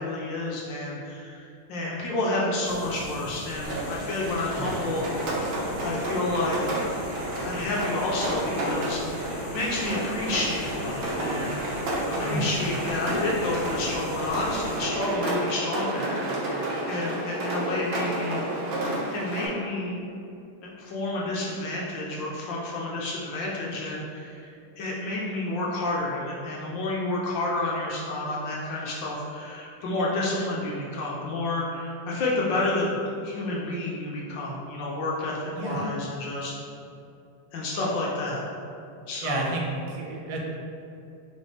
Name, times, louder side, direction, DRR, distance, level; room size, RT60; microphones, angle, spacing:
voice 1, 0.0-5.0 5.8-6.6 7.4-9.3 9.5-18.7 19.1-20.0 20.6-32.9 33.2-36.5 37.5-38.4 39.1-39.5, left 2 dB, 70° left, -4 dB, 1.2 m, -30 dB
sound 1, 2.6-14.8, left 1 dB, 85° left, 1.5 m, -40 dB
Rain, 3.6-19.5, right 1 dB, 65° right, 1.4 m, -31 dB
voice 2, 35.5-35.9 39.2-40.4, right 2 dB, 90° right, -1 dB, 1.6 m, -30 dB
4.2 x 3.4 x 3.2 m, 2.6 s
omnidirectional pair, 2.3 m